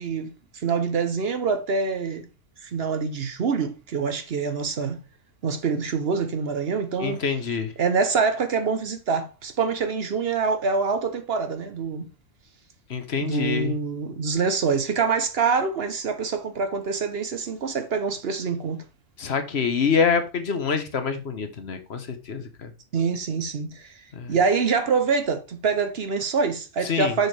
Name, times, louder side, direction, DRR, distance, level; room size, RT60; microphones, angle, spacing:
voice 1, 0.0-2.3 2.6-5.0 5.4-7.2 7.8-12.1 13.2-18.8 22.9-24.0 24.3-27.3, right 5 dB, 55° right, 1.0 m, -25 dB
voice 2, 7.0-7.7 12.9-13.8 19.2-22.7 24.1-24.3 26.8-27.2, left 6 dB, 60° left, 1.2 m, -26 dB
6.6 x 6.2 x 3.3 m
omnidirectional pair, 1.3 m